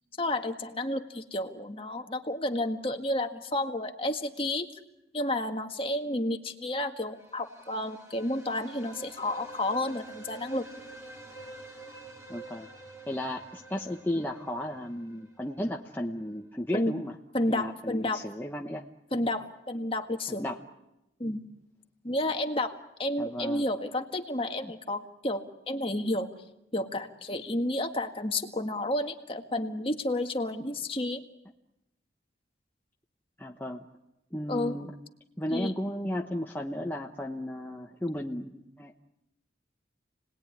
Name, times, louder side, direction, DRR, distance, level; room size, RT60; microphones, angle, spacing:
voice 1, 0.2-4.7 5.1-10.7 16.7-16.9 17.3-18.2 19.1-20.4 21.2-21.4 22.0-26.3 26.7-31.2 34.5-34.8 35.5-35.7, left 1 dB, 30° left, 5 dB, 1.8 m, -31 dB
sound 1, 7.0-15.9, right 2 dB, 15° right, 3.5 m, -48 dB
voice 2, 12.3-12.7 13.1-17.1 17.5-18.8 20.3-20.6 23.2-23.6 24.6-24.7 33.4-33.9 34.3-34.9 35.4-39.0, left 1 dB, 10° left, 0 dB, 1.1 m, -34 dB
30.0 x 20.0 x 9.8 m, 0.92 s
head